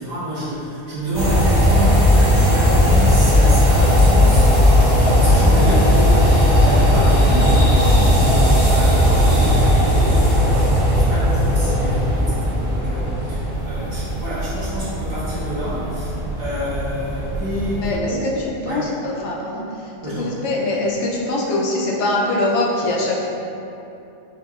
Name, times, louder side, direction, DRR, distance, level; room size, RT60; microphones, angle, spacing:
voice 1, 0.0-8.4 8.7-10.5 10.8-18.4 18.7-18.9 20.0-20.4, left 1 dB, 60° right, -11 dB, 1.4 m, -28 dB
sound 1, 1.1-17.9, equal, 85° right, 1.5 m, -16 dB
voice 2, 17.7-18.3 18.6-23.3, left 2 dB, 80° left, -3 dB, 0.9 m, -23 dB
4.6 x 2.7 x 2.4 m, 2.8 s
omnidirectional pair, 1.2 m